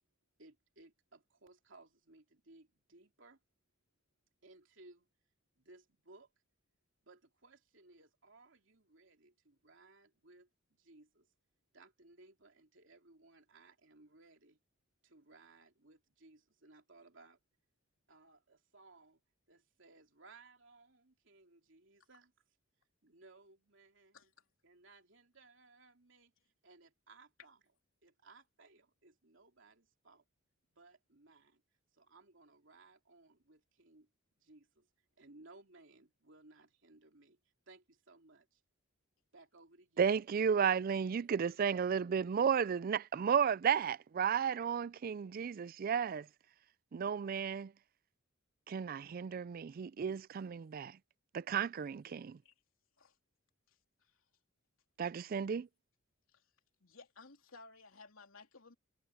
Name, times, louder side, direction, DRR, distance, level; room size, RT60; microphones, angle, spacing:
voice 1, 0.4-3.4 4.4-5.1 5.6-6.3 7.0-11.3 11.7-14.6 15.0-17.4 18.1-19.2 19.5-22.3 23.0-24.3 24.6-26.3 26.6-27.6 28.0-30.2 30.7-31.6 31.9-34.1 34.4-34.9 35.2-37.4 37.7-38.6 39.3-40.1, right 3 dB, 65° right, 3.5 m, -62 dB
voice 2, 40.0-46.3 46.9-47.7 48.7-51.0 51.3-52.4 55.0-55.7, right 7 dB, 45° right, 0.3 m, -33 dB
voice 3, 56.8-58.7, left 3 dB, 90° left, 3.3 m, -57 dB
head